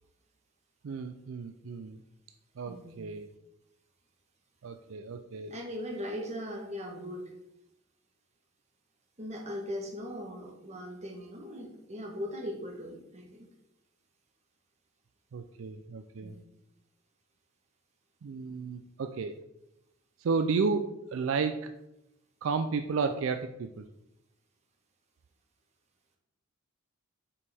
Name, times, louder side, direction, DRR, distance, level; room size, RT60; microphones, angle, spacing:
voice 1, 0.8-2.0 2.6-3.2 4.6-5.5 15.3-16.3 18.2-19.3 20.2-21.7 22.4-23.8, right 4 dB, 70° right, 7 dB, 0.4 m, -32 dB
voice 2, 2.6-3.0 5.5-7.3 9.2-13.5 16.2-16.4, equal, 35° right, 1 dB, 1.2 m, -39 dB
6.8 x 5.2 x 3.5 m, 0.85 s
head